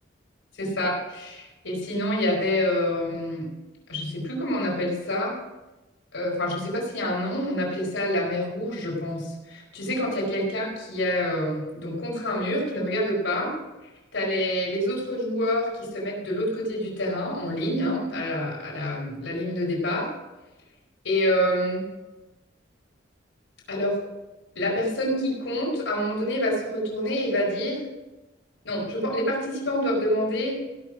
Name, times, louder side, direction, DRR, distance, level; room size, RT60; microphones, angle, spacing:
voice 1, 0.6-3.5 3.9-5.3 6.1-13.5 14.1-20.1 21.0-21.9 23.7-23.9 24.5-27.8 28.6-30.5, left 1 dB, 85° left, -3 dB, 4.5 m, -27 dB
17.0 x 6.3 x 6.1 m, 1.1 s
head